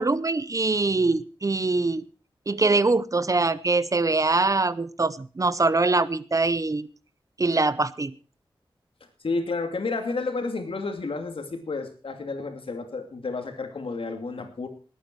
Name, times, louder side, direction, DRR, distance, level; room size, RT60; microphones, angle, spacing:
voice 1, 0.0-2.0 2.5-6.9 7.4-8.1, right 3 dB, 35° right, 17 dB, 0.6 m, -23 dB
voice 2, 9.2-14.7, left 3 dB, 75° left, 6 dB, 2.6 m, -31 dB
20.0 x 9.2 x 4.6 m, 0.37 s
wide cardioid pair, 95°, 9 cm